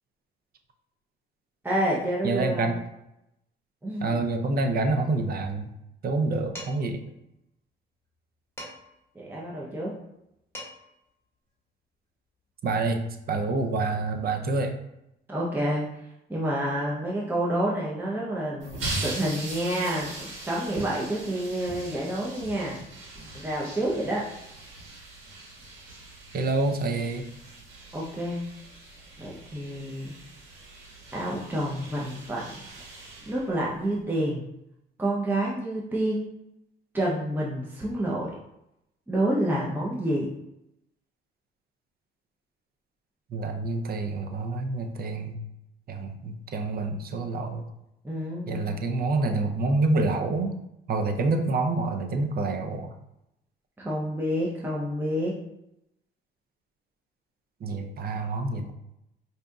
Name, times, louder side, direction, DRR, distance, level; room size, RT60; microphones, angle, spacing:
voice 1, 1.6-2.7 3.8-4.1 9.1-9.9 15.3-15.9 16.3-22.8 23.3-24.3 27.9-28.4 29.2-30.1 31.1-32.6 33.2-34.5 35.0-36.3 36.9-38.4 39.1-40.3 48.0-48.6 53.8-55.4, right 1 dB, 10° right, -5 dB, 0.7 m, -28 dB
voice 2, 2.2-2.8 4.0-5.7 6.0-7.0 12.6-13.0 13.3-14.8 26.3-27.3 43.3-45.4 45.9-47.6 48.5-50.6 50.9-52.9 57.6-58.7, right 3 dB, 50° right, 5 dB, 0.6 m, -27 dB
Dishes pots and pans, 6.6-7.0 8.6-9.0 10.2-10.3 10.5-11.0, left 1 dB, 15° left, 1.5 m, -42 dB
sound 1, 18.6-34.0, right 2 dB, 85° right, 1.4 m, -40 dB
4.9 x 2.7 x 2.3 m, 0.85 s
cardioid pair, 90°, 20 cm